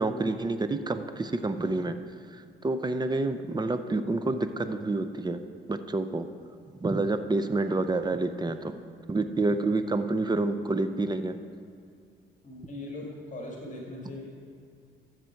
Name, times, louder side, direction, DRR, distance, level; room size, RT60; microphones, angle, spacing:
voice 1, 0.0-1.9 2.6-5.4 5.7-6.3 6.8-8.7 9.1-11.3, right 2 dB, 20° right, 9 dB, 0.6 m, -28 dB
voice 2, 12.4-14.4, left 1 dB, 40° left, -1 dB, 1.9 m, -40 dB
13.0 x 7.6 x 4.6 m, 2.3 s
cardioid pair, 90°, 20 cm